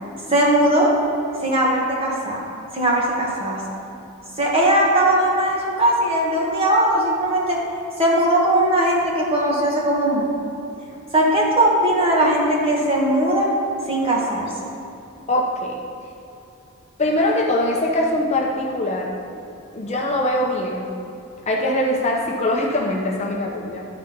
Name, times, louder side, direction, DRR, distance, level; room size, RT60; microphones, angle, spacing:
voice 1, 0.3-0.9 1.4-2.4 2.7-3.6 4.4-7.6 8.0-10.3 11.1-13.5 13.9-14.4, right 1 dB, 25° right, -3 dB, 1.4 m, -19 dB
voice 2, 15.3-15.8 17.0-19.1 19.7-20.9 21.5-23.9, left 1 dB, 30° left, -2 dB, 0.7 m, -22 dB
11.5 x 3.9 x 5.2 m, 2.9 s
head